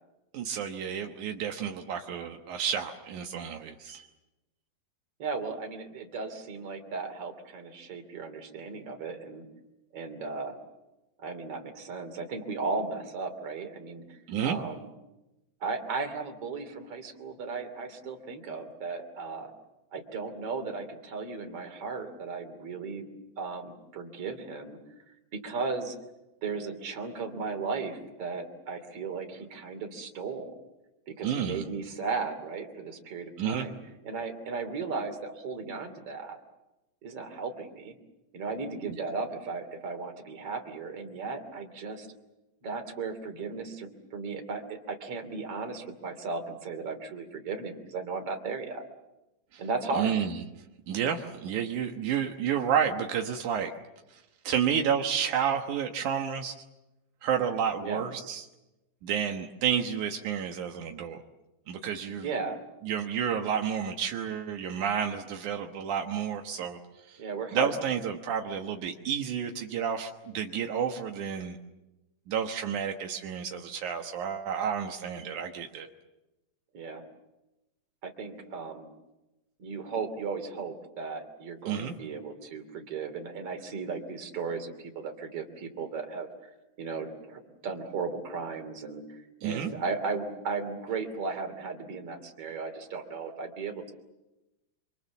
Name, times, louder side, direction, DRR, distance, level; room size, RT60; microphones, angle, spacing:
voice 1, 0.3-4.1 14.3-14.6 31.2-31.6 33.4-33.7 49.5-49.6 49.9-50.3 50.9-53.7 54.1-56.6 57.2-58.5 59.0-61.2 61.7-62.3 62.8-66.8 67.1-67.2 67.5-71.6 72.3-75.9 81.7-81.9 89.4-89.7, right 8 dB, 70° right, 3 dB, 1.9 m, -30 dB
voice 2, 5.2-9.5 9.9-10.6 11.2-14.9 15.6-19.5 19.9-23.1 23.4-24.8 25.3-25.9 26.4-30.5 31.1-33.8 34.0-36.4 37.0-37.9 38.3-42.1 42.6-48.8 49.6-50.1 57.8-58.0 62.2-62.6 67.2-67.7 76.7-77.0 78.0-78.9 79.6-86.3 86.8-93.9, right 4 dB, 35° right, 7 dB, 3.1 m, -36 dB
27.0 x 27.0 x 7.2 m, 0.98 s
omnidirectional pair, 5.3 m